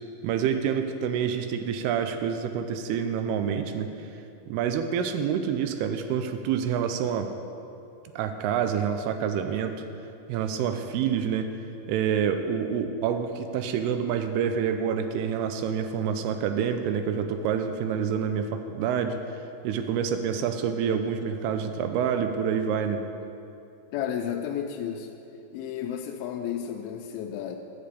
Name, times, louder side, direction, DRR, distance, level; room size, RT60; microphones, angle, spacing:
voice 1, 0.2-3.9 4.5-7.3 8.2-9.9 10.3-11.5 11.9-19.4 19.6-23.1, right 7 dB, 85° right, 8 dB, 2.5 m, -27 dB
voice 2, 23.9-25.1 25.5-27.6, left 9 dB, 80° left, 2 dB, 2.2 m, -32 dB
10.5 x 5.2 x 8.2 m, 2.7 s
omnidirectional pair, 4.7 m